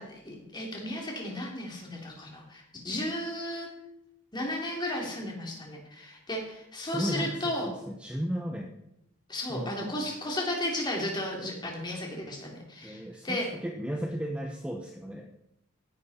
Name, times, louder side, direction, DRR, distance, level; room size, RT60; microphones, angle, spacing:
voice 1, 0.0-3.7 4.3-7.7 9.3-13.5, left 1 dB, 20° left, -1 dB, 3.4 m, -34 dB
voice 2, 6.8-8.7 9.5-10.1 12.8-15.3, equal, 5° right, 2 dB, 0.9 m, -35 dB
16.0 x 11.0 x 4.4 m, 0.83 s
head